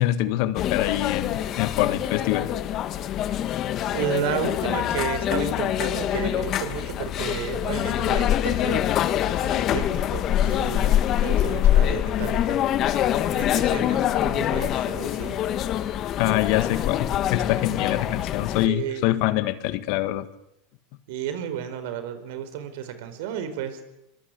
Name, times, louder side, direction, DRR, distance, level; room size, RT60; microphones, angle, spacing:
voice 1, 0.0-2.5 16.2-20.3, left 15 dB, 60° left, 1.7 m, -25 dB
sound 1, 0.5-18.7, left 11 dB, 40° left, 1.6 m, -24 dB
voice 2, 3.9-8.9 9.4-12.6 13.3-15.4 18.6-19.1 21.1-23.8, right 9 dB, 70° right, 4.6 m, -32 dB
24.0 x 21.5 x 8.4 m
supercardioid pair, 120°, 0 cm